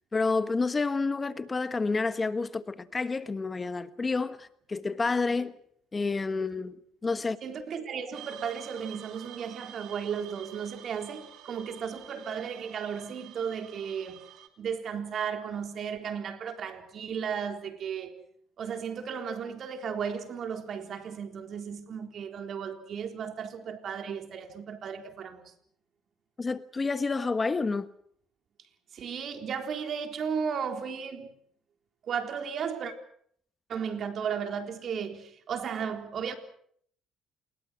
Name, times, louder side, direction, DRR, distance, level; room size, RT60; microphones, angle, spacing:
voice 1, 0.1-5.6 5.9-6.8 7.0-7.4 26.4-27.9, left 4 dB, 30° left, 1.4 m, -29 dB
voice 2, 7.4-14.3 14.6-18.2 18.6-25.5 28.9-31.3 32.0-32.9 33.7-36.4, right 7 dB, 55° right, 3.8 m, -35 dB
sound 1, 8.1-14.5, right 11 dB, 70° right, 2.7 m, -49 dB
28.5 x 21.0 x 6.4 m
supercardioid pair, 65°, 0 cm